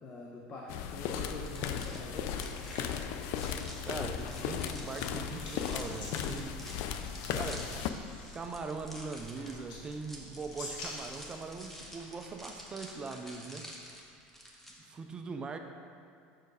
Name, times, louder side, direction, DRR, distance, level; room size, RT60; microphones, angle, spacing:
voice 1, 0.0-2.3 15.3-15.6, left 2 dB, 35° left, -2 dB, 0.7 m, -45 dB
sound 1, 0.7-7.9, left 8 dB, 65° left, 0.4 m, -36 dB
sound 2, 0.8-13.0, left 2 dB, 85° left, 1.3 m, -49 dB
sound 3, 0.9-14.7, equal, 5° left, 0.9 m, -50 dB
voice 2, 3.8-6.6 7.3-7.7 8.3-13.7 14.8-15.6, right 4 dB, 20° right, 5 dB, 0.4 m, -41 dB
6.3 x 4.6 x 4.7 m, 2.3 s
supercardioid pair, 130°, 4 cm